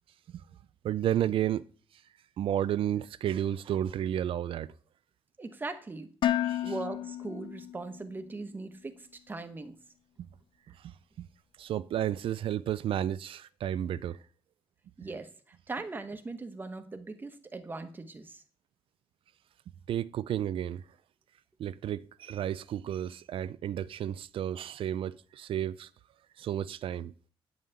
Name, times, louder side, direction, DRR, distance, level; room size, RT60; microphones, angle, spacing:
voice 1, 0.8-1.7 1.9-2.0 2.4-4.7 6.4-6.7 10.7-11.3 11.6-14.2 15.0-15.1 19.9-20.8 21.6-25.9 26.4-27.1, right 11 dB, 70° right, 0.4 m, -32 dB
voice 2, 5.4-6.1 6.6-9.8 15.0-18.4, right 3 dB, 20° right, 1.1 m, -40 dB
Dishes pots and pans, 6.2-8.3, left 12 dB, 60° left, 0.4 m, -32 dB
9.3 x 5.6 x 8.2 m
wide cardioid pair, 160°, 9 cm